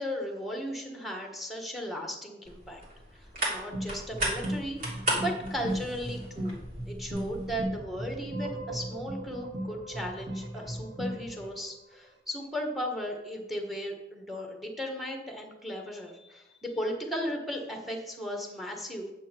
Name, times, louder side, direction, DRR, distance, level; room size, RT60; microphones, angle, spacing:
voice 1, 0.0-2.8 3.1-6.6 6.9-19.1, equal, ahead, 2 dB, 1.5 m, -36 dB
sound 1, 2.5-7.6, right 1 dB, 55° right, 3.1 m, -36 dB
sound 2, 3.7-11.4, equal, 30° right, 2.5 m, -37 dB
sound 3, 7.1-12.0, right 4 dB, 90° right, 1.4 m, -45 dB
8.9 x 7.6 x 4.5 m, 0.99 s
head